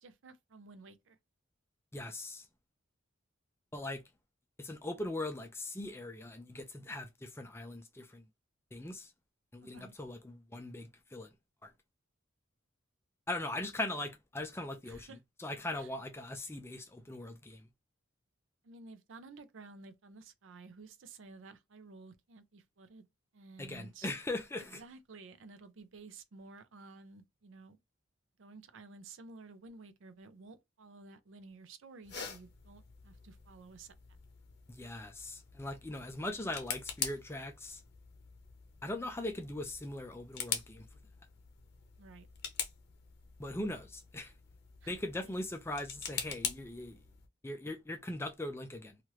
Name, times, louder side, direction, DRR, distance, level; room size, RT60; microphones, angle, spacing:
voice 1, 0.0-1.2 9.6-9.9 14.8-15.2 15.8-15.9 18.6-23.1 23.3-24.1 24.7-27.8 28.4-33.9 42.0-42.3 44.8-45.0 45.2-45.3, right 3 dB, 70° right, 0.5 m, -53 dB
voice 2, 1.9-2.5 3.7-4.0 4.6-8.3 8.7-9.1 9.5-11.3 11.6-11.7 13.3-15.1 15.4-17.6 23.6-24.8 34.7-37.8 38.8-40.9 43.4-44.3 44.9-47.0 47.4-49.0, left 1 dB, 10° left, 0.4 m, -40 dB
sound 1, 32.0-47.3, left 7 dB, 55° left, 0.7 m, -44 dB
2.9 x 2.4 x 3.1 m
head